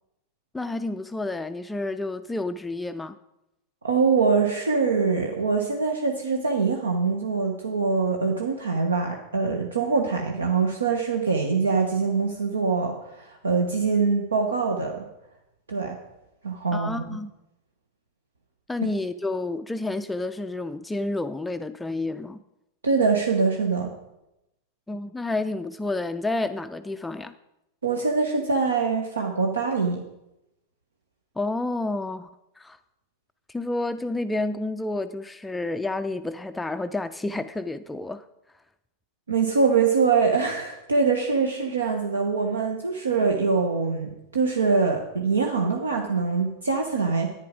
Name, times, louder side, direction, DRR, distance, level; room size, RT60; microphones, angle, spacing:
voice 1, 0.5-3.2 16.7-17.3 18.7-22.4 24.9-27.3 31.4-32.3 32.6-32.8 33.5-38.2, left 2 dB, 5° left, 0.4 m, -30 dB
voice 2, 3.8-15.0 15.7-16.0 16.4-17.1 22.8-23.9 27.8-30.0 39.3-47.3, right 4 dB, 75° right, 1.0 m, -24 dB
10.5 x 9.4 x 5.1 m
figure-of-eight pair, 90°, 0 cm